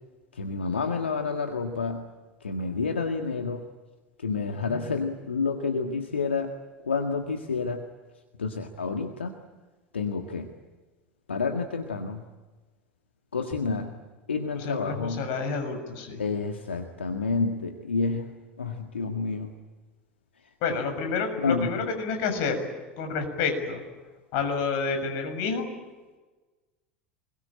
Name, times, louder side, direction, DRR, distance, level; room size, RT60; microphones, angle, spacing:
voice 1, 0.3-2.0 2.4-3.6 4.2-6.5 6.8-7.8 8.4-9.4 9.9-10.5 11.3-12.2 13.3-13.9 14.3-15.3 16.2-18.3 18.6-19.5 21.4-21.7, left 4 dB, 85° left, 4 dB, 1.8 m, -29 dB
voice 2, 14.5-16.2 20.6-22.6 23.0-23.8 24.3-25.7, left 5 dB, 60° left, 6 dB, 6.8 m, -29 dB
27.0 x 21.5 x 9.0 m, 1.2 s
hypercardioid pair, 80°, 6 cm